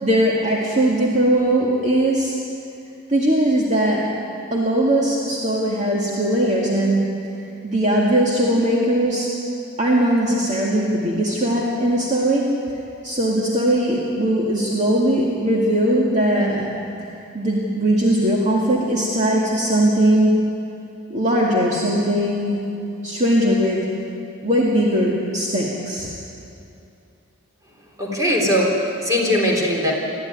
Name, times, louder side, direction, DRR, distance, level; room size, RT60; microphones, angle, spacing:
voice 1, 0.0-2.4 3.1-4.0 4.5-7.0 7.6-9.3 9.8-12.5 13.0-16.7 17.3-20.3 21.1-22.6 23.0-23.8 24.4-26.1, right 1 dB, 35° right, -4 dB, 2.1 m, -19 dB
voice 2, 28.0-29.9, equal, 15° right, -2 dB, 3.9 m, -20 dB
21.0 x 14.5 x 9.7 m, 2.7 s
head